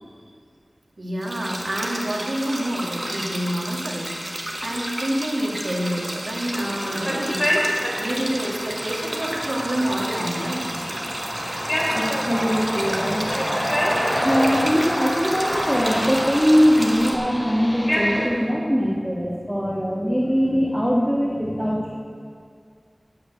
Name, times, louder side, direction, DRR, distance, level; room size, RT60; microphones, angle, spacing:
voice 1, 1.0-7.5 8.0-10.8, right 1 dB, 65° right, -1 dB, 2.0 m, -28 dB
sound 1, 1.2-17.1, right 1 dB, 30° right, 1.7 m, -32 dB
sound 2, 6.6-18.2, equal, 20° left, 2.7 m, -27 dB
voice 2, 11.9-13.3 14.2-21.9, equal, ahead, -4 dB, 1.5 m, -21 dB
8.7 x 8.6 x 9.0 m, 2.2 s
wide cardioid pair, 60°, 0 cm